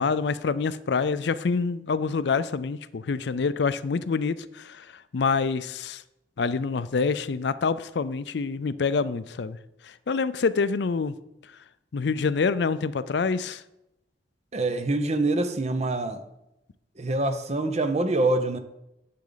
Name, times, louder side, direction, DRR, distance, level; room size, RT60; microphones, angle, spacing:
voice 1, 0.0-6.0 6.4-9.6 9.8-11.2 11.9-13.6, left 5 dB, 70° left, 0.5 m, -26 dB
voice 2, 14.5-16.2 17.0-18.6, right 2 dB, 40° right, 0.8 m, -25 dB
10.5 x 7.5 x 4.0 m
head